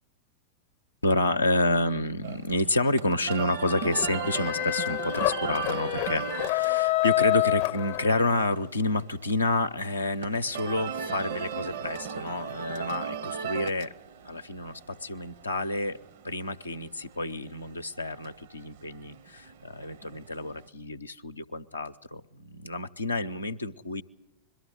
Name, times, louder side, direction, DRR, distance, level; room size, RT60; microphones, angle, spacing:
voice 1, 1.0-13.9 14.2-16.0 16.2-24.0, left 2 dB, 80° left, 7 dB, 0.6 m, -29 dB
sound 1, 2.2-20.7, right 8 dB, 55° right, 0.7 m, -39 dB
sound 2, 3.6-8.5, left 20 dB, 45° left, 0.7 m, -28 dB
22.0 x 13.0 x 9.7 m, 1.0 s
figure-of-eight pair, 90°, 0 cm